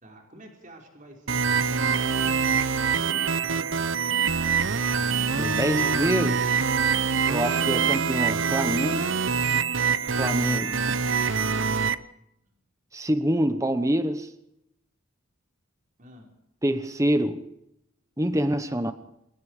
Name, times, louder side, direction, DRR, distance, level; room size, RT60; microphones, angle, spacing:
voice 1, 0.0-2.6 3.0-4.4 12.4-12.6 16.0-16.3 18.7-18.8, equal, 35° right, 5.2 m, -49 dB
sound 1, 1.3-11.9, right 6 dB, 65° right, 0.9 m, -24 dB
voice 2, 5.4-6.5 7.3-9.0 10.2-10.8 12.9-14.3 16.6-17.5 18.2-18.9, right 1 dB, 15° right, 1.0 m, -26 dB
27.0 x 21.0 x 5.0 m
head